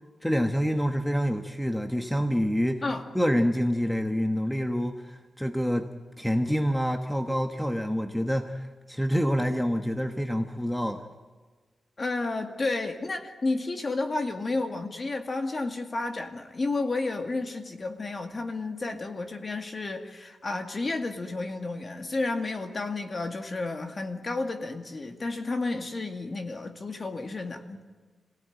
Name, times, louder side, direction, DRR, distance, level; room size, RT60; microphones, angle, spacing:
voice 1, 0.2-2.8 3.1-5.9 6.2-11.0, equal, 5° left, 5 dB, 1.2 m, -27 dB
voice 2, 12.0-27.8, left 3 dB, 35° left, 5 dB, 2.1 m, -31 dB
26.5 x 17.0 x 9.4 m, 1.4 s
wide cardioid pair, 130°, 0 cm